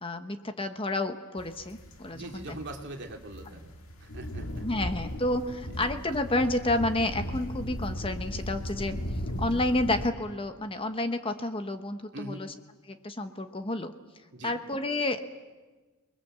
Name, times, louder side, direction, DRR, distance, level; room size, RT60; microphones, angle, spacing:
voice 1, 0.0-2.6 4.6-9.0 9.4-12.5 12.9-13.9 14.4-15.2, left 1 dB, 25° left, 8 dB, 1.0 m, -30 dB
sound 1, 1.4-10.1, equal, 70° left, 2.2 m, -37 dB
voice 2, 2.1-3.7 4.0-4.6 5.7-5.8 12.1-12.5 14.3-14.6, right 1 dB, 55° right, 2 dB, 2.6 m, -42 dB
29.5 x 21.0 x 7.5 m, 1.3 s
head